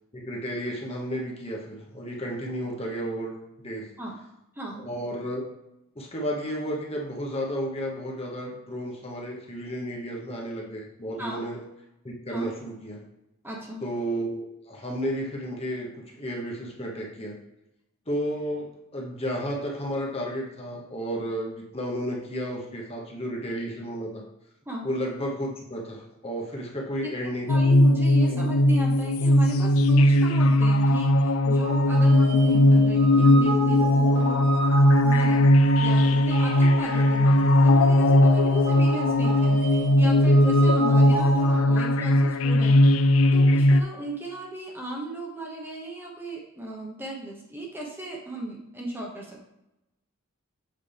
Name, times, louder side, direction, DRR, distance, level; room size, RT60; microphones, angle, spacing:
voice 1, 0.1-3.9 4.7-5.4 5.9-11.6 12.0-13.0 13.8-17.4 18.1-24.2 24.8-27.5 28.3-28.5, equal, 30° left, -2 dB, 1.1 m, -32 dB
voice 2, 4.5-4.9 11.2-11.5 12.3-12.5 13.4-13.8 24.7-24.9 27.0-34.4 35.0-43.1 43.3-49.4, right 2 dB, 10° right, -2 dB, 1.0 m, -36 dB
sound 1, 27.5-43.8, left 1 dB, 90° left, 0.5 m, -19 dB
sound 2, 31.6-41.6, right 2 dB, 75° right, 2.6 m, -33 dB
7.7 x 5.4 x 3.4 m, 0.90 s
head